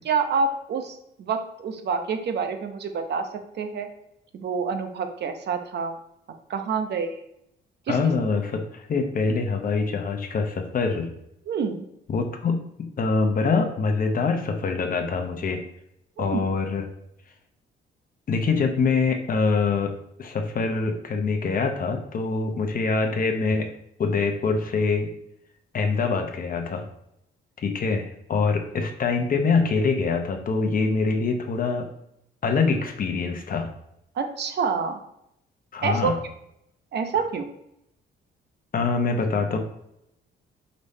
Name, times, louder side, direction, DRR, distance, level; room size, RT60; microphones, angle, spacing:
voice 1, 0.1-3.3 3.6-3.9 4.3-6.0 6.5-7.2 7.9-8.0 11.5-11.8 16.2-16.5 34.2-35.0 35.8-36.1 36.9-37.5, right 5 dB, 60° right, 7 dB, 0.6 m, -27 dB
voice 2, 7.9-11.1 12.1-15.6 16.2-16.8 18.3-19.9 20.2-23.7 24.0-25.1 25.7-26.8 27.6-31.9 32.4-33.7 35.7-36.2 38.7-39.6, left 4 dB, 45° left, 5 dB, 0.8 m, -24 dB
5.2 x 3.2 x 2.7 m, 0.78 s
cardioid pair, 90°, 20 cm